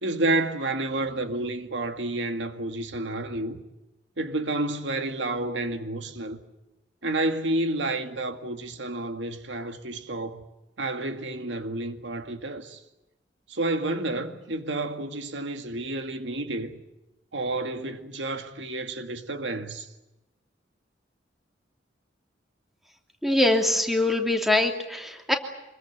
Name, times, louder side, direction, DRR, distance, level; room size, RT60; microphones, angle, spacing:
voice 1, 0.0-3.6 4.2-6.4 7.0-10.4 10.8-12.8 13.5-16.8 17.3-19.9, right 2 dB, 80° right, 2.0 m, -30 dB
voice 2, 23.2-25.3, left 1 dB, ahead, 2.8 m, -23 dB
25.5 x 22.5 x 8.0 m
head